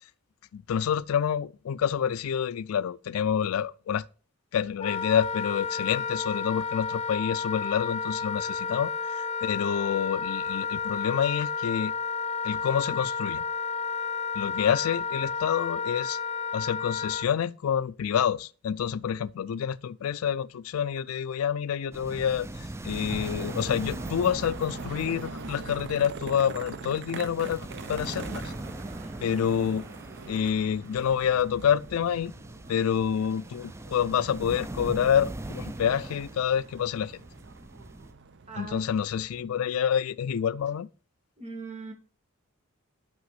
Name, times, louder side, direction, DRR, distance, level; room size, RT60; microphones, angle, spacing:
voice 1, 0.5-4.1 4.5-11.9 12.4-13.4 14.4-16.2 16.5-28.5 29.2-29.9 30.3-32.3 32.7-37.2 38.6-40.9, left 8 dB, 70° left, 0.3 m, -28 dB
Wind instrument woodwind instrument, 4.8-17.3, left 5 dB, 30° left, 0.8 m, -31 dB
sound 1, 21.9-38.1, right 1 dB, 10° right, 0.4 m, -41 dB
sound 2, 23.1-39.4, right 4 dB, 55° right, 0.7 m, -43 dB
voice 2, 29.0-29.3 38.5-38.8 41.4-41.9, right 4 dB, 30° right, 2.0 m, -40 dB
6.0 x 6.0 x 5.6 m
head